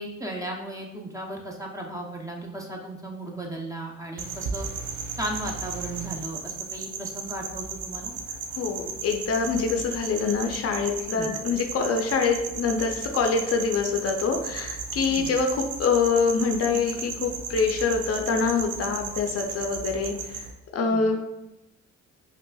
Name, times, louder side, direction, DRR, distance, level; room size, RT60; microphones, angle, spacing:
voice 1, 0.0-4.7 5.1-8.1 11.1-11.3 15.1-15.3 20.8-21.0, right 1 dB, 10° right, -1 dB, 0.6 m, -35 dB
sound 1, 4.2-20.5, right 5 dB, 90° right, 0.6 m, -35 dB
voice 2, 8.6-20.4 20.7-21.2, left 5 dB, 50° left, 3 dB, 0.5 m, -25 dB
5.3 x 2.5 x 2.3 m, 0.93 s
cardioid pair, 90°, 30 cm